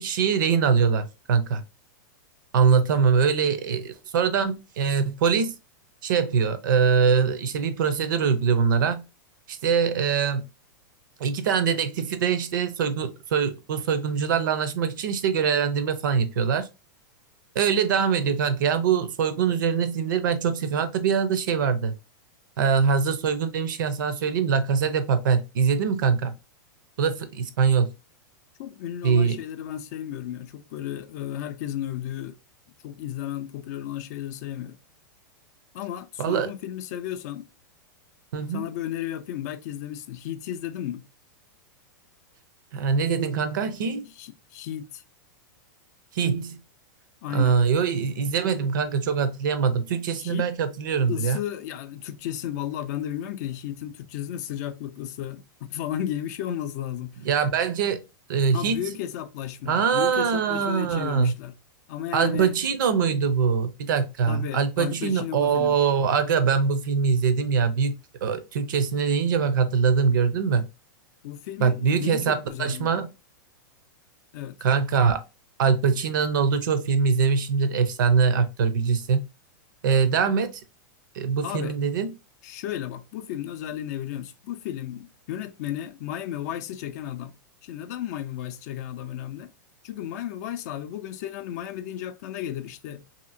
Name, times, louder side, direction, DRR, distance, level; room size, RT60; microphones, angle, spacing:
voice 1, 0.0-1.6 2.5-5.5 6.0-9.0 9.5-10.4 11.2-16.7 17.6-21.9 22.6-26.3 27.0-27.9 29.0-29.4 36.2-36.5 38.3-38.7 42.7-44.1 46.1-46.6 47.3-51.4 57.2-58.0 58.3-58.8 59.7-61.3 62.1-68.0 68.2-70.7 71.6-73.1 74.6-75.2 75.6-79.2 79.8-80.6 81.1-82.1, right 6 dB, 75° right, 0.5 m, -23 dB
voice 2, 28.6-32.4 32.8-34.8 35.7-37.5 38.5-41.0 44.2-45.0 47.2-47.6 50.2-50.5 51.1-57.2 58.5-61.5 61.9-62.5 64.3-65.8 71.2-72.9 74.3-74.6 81.4-81.8 82.4-87.4 87.6-89.5 89.8-93.0, left 11 dB, 55° left, 0.4 m, -34 dB
2.8 x 2.7 x 2.5 m
hypercardioid pair, 125°, 11 cm